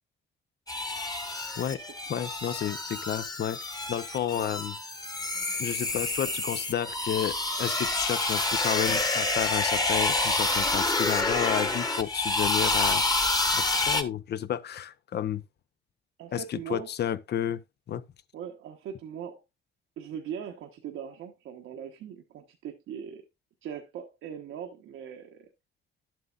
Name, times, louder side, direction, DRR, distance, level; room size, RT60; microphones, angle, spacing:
sound 1, 0.7-14.0, left 2 dB, 20° left, 1.3 m, -28 dB
voice 1, 2.1-3.6 3.9-4.7 5.6-13.0 13.5-15.4 16.3-17.6 17.9-18.0, left 10 dB, 55° left, 0.7 m, -31 dB
voice 2, 16.2-16.9 18.3-19.4 20.0-23.2 23.6-25.5, right 8 dB, 80° right, 1.1 m, -40 dB
11.0 x 7.6 x 2.4 m
cardioid pair, 90°, 20 cm